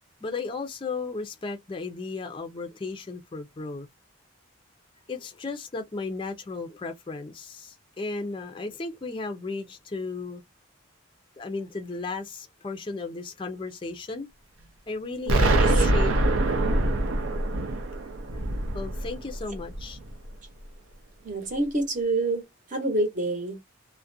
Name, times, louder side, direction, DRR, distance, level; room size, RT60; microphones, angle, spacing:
voice 1, 0.2-3.9 5.1-10.4 11.4-14.3 14.9-16.1 18.7-20.0, left 3 dB, 25° left, 0.4 m, -35 dB
voice 2, 15.3-15.9 21.2-22.4 22.7-23.6, right 2 dB, 40° right, 0.8 m, -27 dB
Explosion, 15.3-20.1, right 1 dB, 75° right, 0.5 m, -24 dB
2.4 x 2.1 x 2.6 m
head